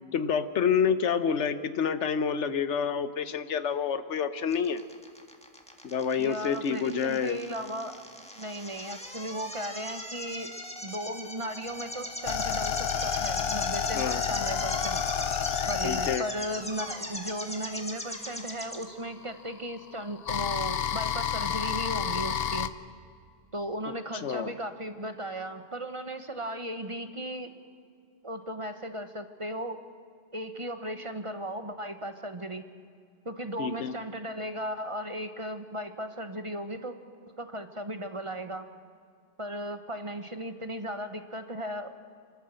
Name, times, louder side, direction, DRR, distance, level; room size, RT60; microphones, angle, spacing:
voice 1, 0.1-4.8 5.8-7.4 13.9-14.2 15.8-16.3 24.2-24.5 33.6-33.9, left 7 dB, 85° left, 12 dB, 1.2 m, -28 dB
sound 1, 4.5-18.8, equal, 5° left, 1.6 m, -39 dB
voice 2, 6.2-8.0 8.4-10.5 10.8-15.0 15.7-22.7 23.5-27.5 28.2-29.8 30.3-32.6 33.2-37.0 37.4-38.7 39.4-41.9, right 1 dB, 30° right, 8 dB, 1.0 m, -36 dB
sound 2, 11.7-17.9 18.9-22.7, left 8 dB, 60° left, 0.9 m, -30 dB
28.0 x 13.0 x 7.6 m, 2.3 s
omnidirectional pair, 1.2 m